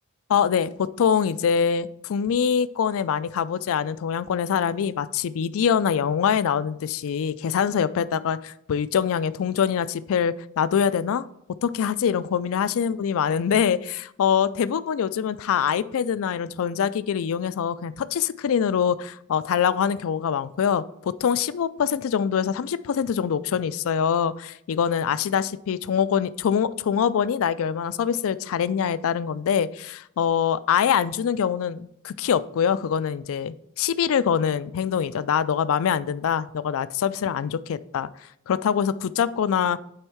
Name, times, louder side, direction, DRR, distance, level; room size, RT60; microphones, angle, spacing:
voice 1, 0.3-0.7 1.0-11.2 11.6-38.1 38.5-39.8, left 7 dB, 65° left, 15 dB, 0.4 m, -24 dB
8.9 x 3.6 x 4.6 m, 0.74 s
head